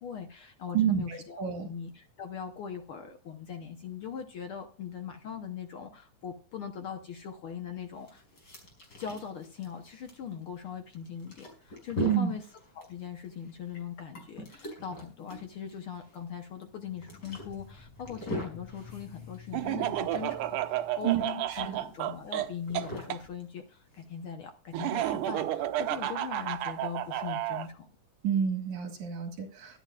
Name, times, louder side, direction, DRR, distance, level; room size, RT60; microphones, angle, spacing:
voice 1, 0.0-8.2 9.0-12.4 12.7-27.9, left 7 dB, 65° left, 6 dB, 1.4 m, -41 dB
voice 2, 0.7-1.7 12.0-12.3 21.0-21.2 21.5-21.8 28.2-29.8, right 9 dB, 70° right, 4 dB, 3.0 m, -29 dB
sound 1, 7.7-24.3, left 2 dB, 35° left, 5.5 m, -43 dB
sound 2, 11.2-11.3 16.7-21.2, left 6 dB, 85° left, 3.8 m, -51 dB
Laughter, 19.5-23.2 24.7-27.7, right 13 dB, 85° right, 2.3 m, -32 dB
23.5 x 9.2 x 2.4 m, 0.35 s
omnidirectional pair, 3.5 m